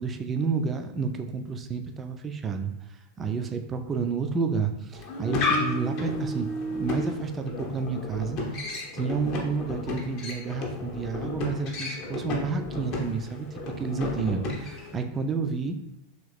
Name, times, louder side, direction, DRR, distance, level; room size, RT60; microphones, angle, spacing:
voice 1, 0.0-2.7 3.2-15.8, right 5 dB, 20° right, 6 dB, 0.3 m, -30 dB
sound 1, 4.9-15.0, left 2 dB, 40° left, 0.7 m, -32 dB
3.0 x 2.7 x 3.2 m, 0.90 s
figure-of-eight pair, 90°, 0 cm